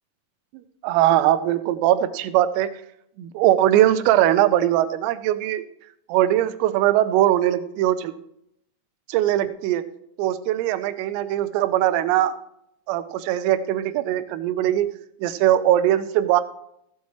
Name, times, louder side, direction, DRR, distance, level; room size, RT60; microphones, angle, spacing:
voice 1, 0.5-2.7 3.2-5.6 6.1-8.1 9.1-9.9 10.2-12.4 12.9-14.9 15.2-16.4, right 12 dB, 90° right, 11 dB, 3.4 m, -20 dB
14.0 x 8.3 x 3.2 m, 0.75 s
omnidirectional pair, 5.9 m